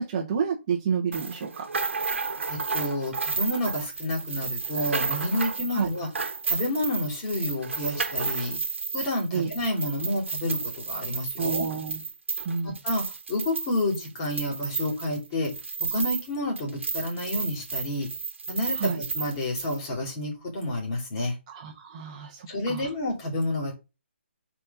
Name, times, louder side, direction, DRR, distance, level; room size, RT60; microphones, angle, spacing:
voice 1, 0.0-1.7 5.7-5.9 9.3-9.5 11.4-12.0 12.4-12.8 18.7-19.0 21.5-22.9, right 6 dB, 25° right, -2 dB, 1.4 m, -29 dB
sound 1, 1.1-16.3 16.6-19.8, right 5 dB, 75° right, 1.6 m, -32 dB
voice 2, 2.5-6.1 6.4-8.6 8.9-11.7 12.6-13.0 13.3-15.5 15.9-18.1 18.5-21.4 22.5-23.7, left 1 dB, 25° left, 0 dB, 2.9 m, -29 dB
4.4 x 4.4 x 5.5 m, 0.26 s
hypercardioid pair, 160°, 7 cm